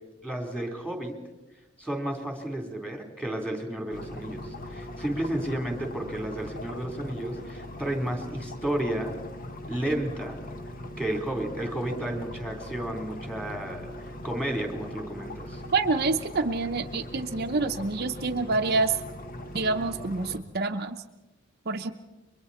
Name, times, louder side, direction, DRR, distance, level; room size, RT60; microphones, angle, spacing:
voice 1, 0.2-1.1 1.8-9.2 9.7-10.4 11.0-13.9 14.2-15.6, right 1 dB, 5° left, 2 dB, 3.6 m, -32 dB
sound 1, 3.9-20.4, left 1 dB, 45° left, 1.3 m, -40 dB
voice 2, 15.7-19.0 19.5-21.0 21.7-21.9, right 3 dB, 50° right, 5 dB, 0.8 m, -27 dB
30.0 x 23.5 x 4.3 m, 1.1 s
head